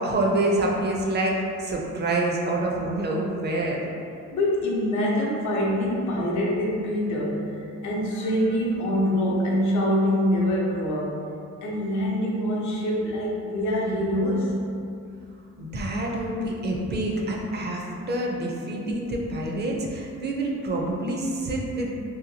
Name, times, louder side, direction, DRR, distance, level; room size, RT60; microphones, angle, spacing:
voice 1, 0.0-3.8 15.6-21.9, right 1 dB, 35° right, -2 dB, 0.4 m, -27 dB
voice 2, 4.3-11.2 11.6-14.6, equal, 70° left, -3 dB, 0.7 m, -25 dB
2.7 x 2.2 x 2.7 m, 2.5 s
cardioid pair, 90°, 30 cm